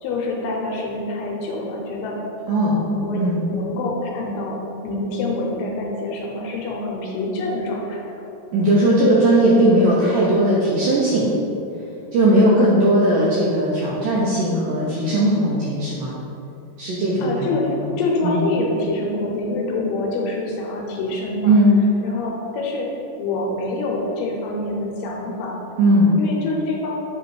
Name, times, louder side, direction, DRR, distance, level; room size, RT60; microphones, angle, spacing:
voice 1, 0.0-2.2 2.7-8.2 14.5-14.8 17.2-17.7 18.0-21.6 22.0-22.9 23.2-25.6 26.2-26.9, left 2 dB, 80° left, -1 dB, 2.6 m, -26 dB
voice 2, 2.5-2.8 3.1-3.4 8.5-11.3 12.1-16.1 16.8-17.9 18.2-18.4 21.5-21.7 25.8-26.2, right 1 dB, 80° right, -5 dB, 1.9 m, -18 dB
7.6 x 3.1 x 4.6 m, 2.9 s
omnidirectional pair, 4.8 m